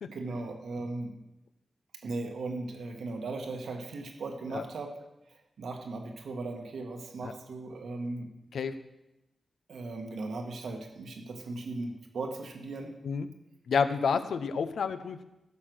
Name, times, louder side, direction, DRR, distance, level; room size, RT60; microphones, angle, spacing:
voice 1, 0.1-1.2 2.0-4.9 5.6-8.3 9.7-13.0, right 3 dB, 85° right, 3 dB, 1.7 m, -37 dB
voice 2, 13.7-15.2, left 6 dB, 85° left, 11 dB, 0.8 m, -29 dB
15.0 x 6.6 x 6.2 m, 0.93 s
wide cardioid pair, 100°, 0 cm